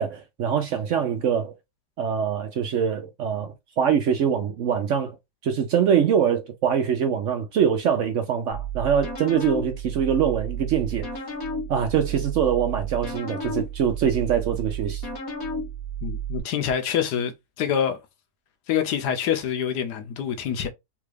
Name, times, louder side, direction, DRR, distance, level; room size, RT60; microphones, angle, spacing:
voice 1, 0.0-1.5 2.0-5.2 5.4-11.1 11.7-15.0, right 8 dB, 65° right, 0.7 m, -23 dB
sound 1, 8.5-16.4, right 4 dB, 65° left, 1.6 m, -32 dB
voice 2, 16.0-17.3 17.6-18.0 18.7-20.7, left 8 dB, 90° left, 1.3 m, -26 dB
3.6 x 2.3 x 3.2 m
omnidirectional pair, 1.7 m